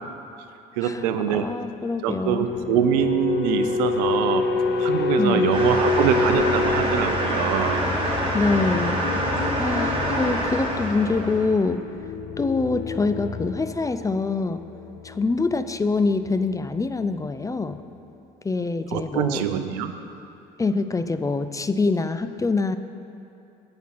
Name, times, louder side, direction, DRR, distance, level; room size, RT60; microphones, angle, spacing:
voice 1, 0.8-1.5 2.0-4.5 4.8-7.9 18.9-19.9, right 9 dB, 85° right, 9 dB, 0.6 m, -24 dB
voice 2, 1.3-2.5 5.2-5.5 8.3-9.0 9.6-11.8 12.4-14.6 15.0-17.8 18.4-19.4 20.6-22.8, left 3 dB, 15° left, 11 dB, 0.4 m, -25 dB
sound 1, 2.4-17.1 17.3-17.6, left 4 dB, 55° left, 0.9 m, -28 dB
sound 2, 5.5-11.5, right 1 dB, 25° right, 2.6 m, -26 dB
17.0 x 6.0 x 4.2 m, 2.7 s
supercardioid pair, 75°, 20 cm